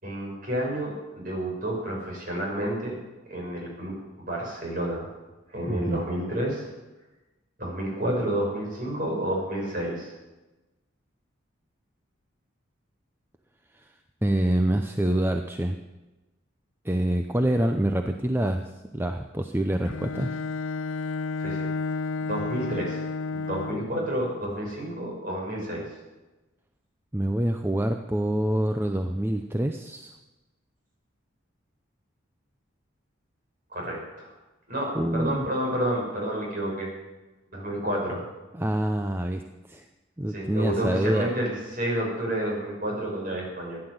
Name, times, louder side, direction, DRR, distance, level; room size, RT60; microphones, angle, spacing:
voice 1, 0.0-3.0 3.3-5.1 5.5-6.7 7.6-10.1 21.4-21.7 22.2-23.0 23.3-25.8 33.7-34.3 34.7-36.9 37.5-38.2 40.3-43.8, right 1 dB, 45° right, -1 dB, 6.1 m, -30 dB
voice 2, 5.7-6.0 14.2-15.8 16.8-20.3 27.1-30.1 34.9-35.4 38.6-39.4 39.7-39.9 40.2-41.3, right 1 dB, 10° right, 5 dB, 0.6 m, -26 dB
Bowed string instrument, 19.9-24.0, left 4 dB, 75° left, 0.5 m, -31 dB
15.5 x 11.0 x 7.9 m, 1.1 s
head